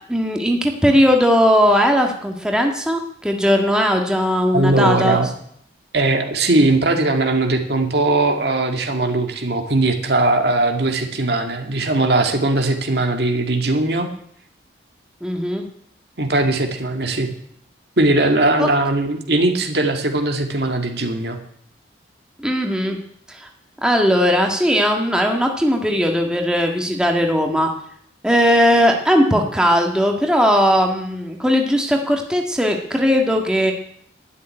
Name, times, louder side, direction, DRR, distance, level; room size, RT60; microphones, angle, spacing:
voice 1, 0.1-5.2 15.2-15.6 18.6-18.7 22.4-23.0 23.3-23.5 23.8-27.7 28.2-33.7, equal, 5° right, 2 dB, 1.6 m, -18 dB
voice 2, 4.5-5.3 5.9-14.1 16.2-17.3 18.0-21.4, right 2 dB, 60° right, 5 dB, 2.0 m, -19 dB
12.5 x 9.6 x 10.0 m, 0.68 s
head